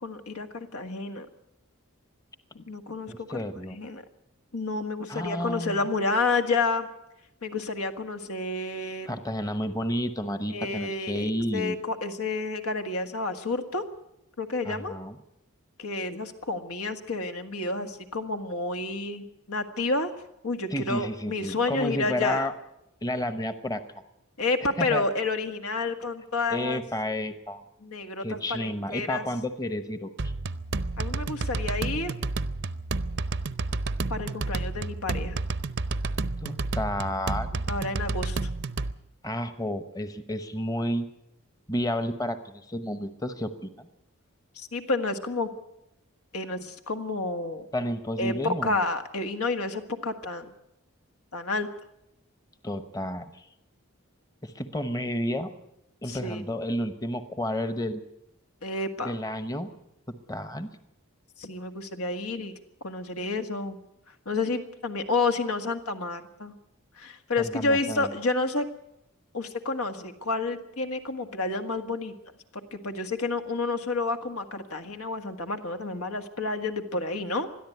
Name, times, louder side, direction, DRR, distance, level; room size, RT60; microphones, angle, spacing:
voice 1, 0.0-1.3 2.5-3.4 3.7-4.0 4.5-6.9 7.4-9.1 10.5-13.8 14.4-14.9 15.8-20.1 20.4-22.5 24.4-26.8 27.8-29.3 31.0-32.1 34.1-35.4 37.7-38.5 44.6-45.5 46.3-47.7 48.2-50.5 51.3-51.7 56.1-56.5 58.6-59.2 61.4-62.5 62.8-63.8 64.3-66.5 67.0-68.7 69.3-72.1 72.7-77.5, left 3 dB, 85° left, 7 dB, 1.7 m, -30 dB
voice 2, 3.1-3.8 5.1-5.9 9.1-11.8 14.6-15.2 20.7-22.5 23.0-23.8 24.8-25.0 26.5-27.6 28.2-30.3 36.4-37.6 39.2-41.1 41.7-43.9 47.7-48.8 52.6-53.5 54.4-55.5 56.0-58.0 59.0-59.7 60.1-60.7 67.4-68.1, equal, 15° left, 10 dB, 0.9 m, -31 dB
sound 1, 30.2-38.9, right 3 dB, 55° right, 0.6 m, -30 dB
21.5 x 13.5 x 9.4 m, 0.85 s
head